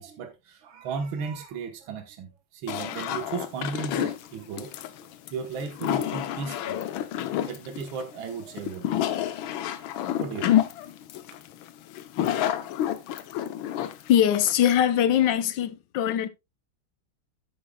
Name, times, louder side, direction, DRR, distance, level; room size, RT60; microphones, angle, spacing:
voice 1, 0.0-4.8 5.3-6.8 7.3-9.2 10.2-10.6, right 5 dB, 85° right, 2.0 m, -35 dB
sound 1, 2.7-14.8, left 11 dB, 90° left, 1.6 m, -29 dB
voice 2, 14.1-16.3, left 10 dB, 70° left, 1.3 m, -22 dB
11.0 x 8.7 x 2.2 m
omnidirectional pair, 2.1 m